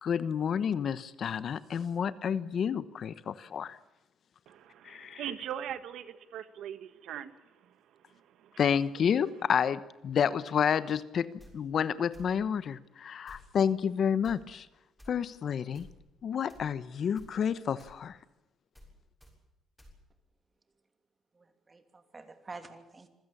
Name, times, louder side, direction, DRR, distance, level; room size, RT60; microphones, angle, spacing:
voice 1, 0.0-3.8 4.8-5.2 8.6-11.3 11.5-14.7 15.1-15.9 16.2-18.2, left 7 dB, 50° left, 1.1 m, -30 dB
voice 2, 4.5-7.4 7.6-8.6, right 10 dB, 75° right, 1.5 m, -41 dB
sound 1, 11.4-11.5 12.1-12.3 13.3-13.5 14.2-14.4 15.0-15.1 15.7-15.9 16.5-16.7 17.2-17.3 17.8-18.0 18.7-18.9 19.2-19.3 19.8-19.9, equal, 5° left, 6.8 m, -53 dB
voice 3, 21.3-23.1, right 3 dB, 25° right, 2.9 m, -48 dB
26.0 x 16.0 x 8.7 m
cardioid pair, 120°, 0 cm